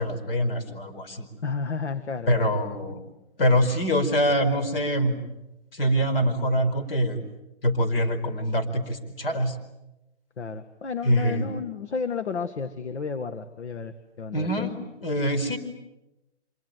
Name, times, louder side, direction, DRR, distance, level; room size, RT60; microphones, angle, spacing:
voice 1, 0.0-1.3 2.3-3.0 3.4-5.2 5.7-7.2 7.6-9.5 11.0-11.6 14.3-15.6, equal, 50° left, 8 dB, 4.9 m, -24 dB
voice 2, 1.4-2.5 10.4-14.6, left 5 dB, 70° left, 9 dB, 1.9 m, -32 dB
26.0 x 24.0 x 9.3 m, 0.97 s
hypercardioid pair, 170°, 35 cm